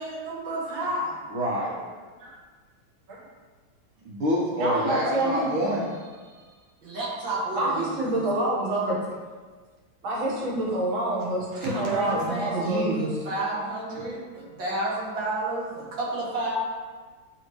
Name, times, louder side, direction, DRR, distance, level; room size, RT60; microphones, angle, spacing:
voice 1, 0.0-1.1 6.8-8.3 11.6-16.5, right 2 dB, 65° right, -6 dB, 2.3 m, -31 dB
voice 2, 1.3-1.9 4.1-6.5 11.5-12.2, equal, 85° right, -5 dB, 1.9 m, -28 dB
voice 3, 4.6-5.5 7.5-9.0 10.0-13.1, right 1 dB, 45° right, -5 dB, 1.4 m, -27 dB
9.3 x 3.5 x 3.1 m, 1.4 s
omnidirectional pair, 2.3 m